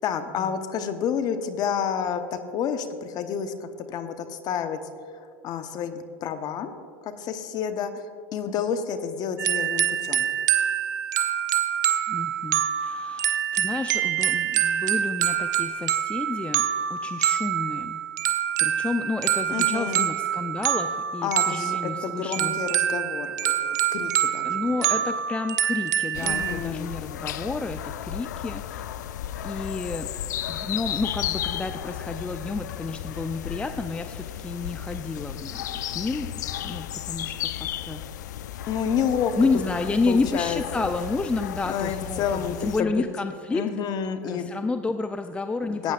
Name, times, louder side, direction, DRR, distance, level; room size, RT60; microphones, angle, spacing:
voice 1, 0.0-4.8 5.1-6.7 7.0-8.0 8.3-10.3 19.5-20.0 21.2-24.9 26.2-26.9 38.7-39.3 40.1-40.6 41.6-43.0 43.5-44.5 45.6-45.9, left 7 dB, 45° left, 9 dB, 0.9 m, -29 dB
sound 1, 9.4-26.6, right 10 dB, 80° right, 0.6 m, -26 dB
voice 2, 12.1-16.6 16.9-18.0 18.6-22.6 24.4-28.8 29.4-30.1 30.5-35.7 35.9-36.3 36.6-38.0 39.4-43.6 44.3-45.9, left 3 dB, 10° left, 8 dB, 0.4 m, -30 dB
sound 2, 26.1-42.8, left 11 dB, 80° left, 0.4 m, -34 dB
17.5 x 9.0 x 2.5 m, 2.1 s
hypercardioid pair, 90°, 9 cm